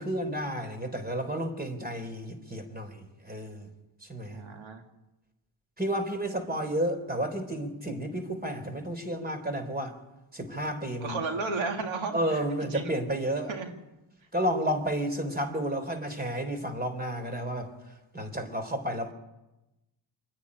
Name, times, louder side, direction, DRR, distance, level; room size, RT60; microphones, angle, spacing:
voice 1, 0.0-3.7 4.0-4.4 5.8-9.9 10.3-11.2 12.1-13.5 14.3-17.7 18.1-19.1, equal, 20° right, 7 dB, 3.7 m, -31 dB
voice 2, 4.3-4.8 11.0-12.4 12.7-12.9 13.5-13.7, right 4 dB, 90° right, 4 dB, 2.3 m, -33 dB
27.0 x 10.0 x 9.8 m, 0.99 s
cardioid pair, 80°, 46 cm